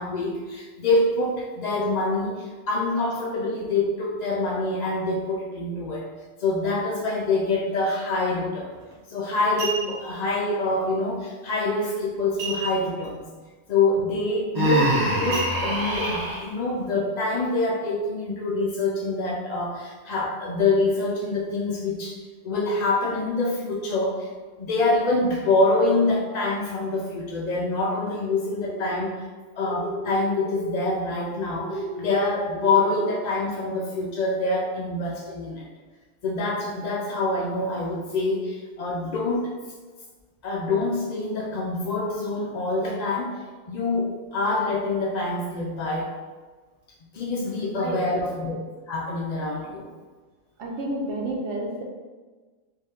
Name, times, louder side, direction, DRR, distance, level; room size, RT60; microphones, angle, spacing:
voice 1, 0.0-6.1 6.4-8.7 9.1-13.2 13.7-22.2 22.4-24.3 24.6-29.3 29.6-35.7 36.2-39.5 40.4-43.4 43.7-46.2 47.1-48.6 48.9-49.9, left 2 dB, 60° left, -1 dB, 0.4 m, -25 dB
sound 1, 8.7-8.9 9.4-10.2 12.4-13.1 13.4-13.5 14.0-14.2 15.3-16.1 16.7-16.8, right 3 dB, 85° right, 1.4 m, -33 dB
Human voice, 14.5-16.4, right 1 dB, 20° right, 0.7 m, -23 dB
sound 2, 28.4-28.9 29.6-30.1 30.4-30.9 31.5-32.0 32.5-33.1, equal, 90° left, 1.1 m, -34 dB
voice 2, 47.8-48.3 50.6-51.8, right 1 dB, 70° right, -2 dB, 1.1 m, -30 dB
4.4 x 2.7 x 3.6 m, 1.3 s
omnidirectional pair, 1.3 m